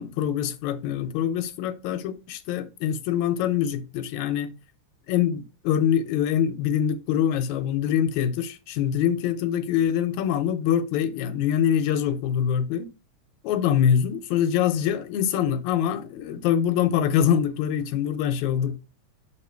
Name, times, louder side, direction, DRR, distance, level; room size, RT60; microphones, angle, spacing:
voice 1, 0.0-4.5 5.1-12.9 13.4-18.8, left 9 dB, 75° left, 1.9 m, -24 dB
6.6 x 3.6 x 4.5 m
omnidirectional pair, 3.5 m